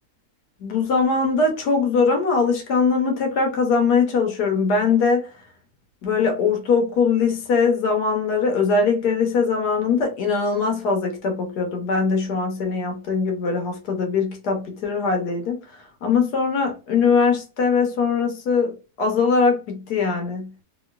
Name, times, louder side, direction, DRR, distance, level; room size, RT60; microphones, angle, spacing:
voice 1, 0.6-5.3 6.0-20.5, left 4 dB, 80° left, 1.4 m, -21 dB
3.0 x 2.9 x 2.3 m
omnidirectional pair, 1.7 m